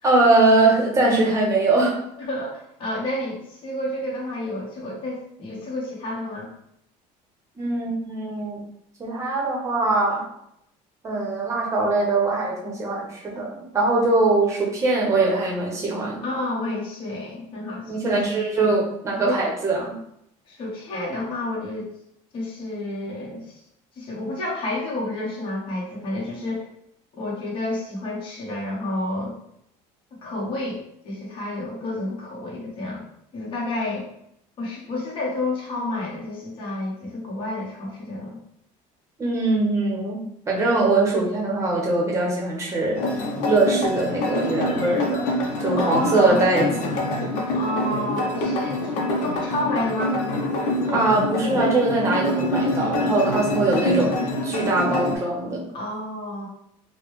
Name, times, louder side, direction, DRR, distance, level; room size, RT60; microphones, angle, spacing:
voice 1, 0.0-2.0 7.6-8.6 9.0-10.3 11.0-16.2 17.9-19.9 39.2-43.0 43.4-45.2 45.6-47.0 50.9-54.2 54.4-55.6, right 2 dB, 20° right, -2 dB, 0.9 m, -22 dB
voice 2, 2.2-6.5 16.2-18.2 19.2-19.4 20.5-21.9 22.3-23.6 23.9-26.7 27.1-29.3 30.2-33.1 33.3-34.1 34.6-38.4 45.8-46.5 47.5-50.2 55.7-56.5, left 1 dB, 35° left, -5 dB, 1.1 m, -30 dB
sound 1, 43.0-55.2, left 1 dB, 60° left, 0.7 m, -25 dB
4.0 x 2.1 x 3.1 m, 0.75 s
cardioid pair, 165°, 15 cm